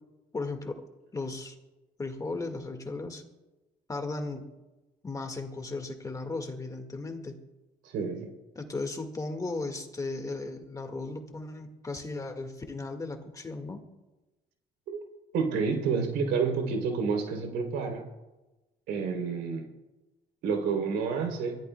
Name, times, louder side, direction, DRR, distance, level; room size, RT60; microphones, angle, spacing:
voice 1, 0.3-0.8 1.1-1.6 2.0-3.2 3.9-4.5 5.0-7.4 8.6-13.8, left 3 dB, 20° left, 5 dB, 1.8 m, -36 dB
voice 2, 7.8-8.3 14.9-15.0 15.3-18.0 18.9-19.7 20.4-21.5, right 5 dB, 85° right, 3 dB, 3.3 m, -29 dB
24.5 x 14.5 x 2.3 m, 1.1 s
cardioid pair, 110°, 17 cm